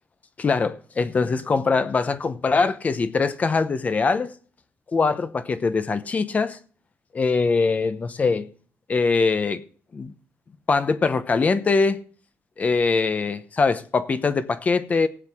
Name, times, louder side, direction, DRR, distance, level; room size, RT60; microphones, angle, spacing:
voice 1, 0.4-4.3 4.9-6.6 7.1-8.5 8.9-9.6 9.9-10.1 10.7-12.0 12.6-15.1, left 4 dB, 30° left, 0.8 m, -22 dB
18.0 x 8.1 x 3.5 m
wide cardioid pair, 175°, 5 cm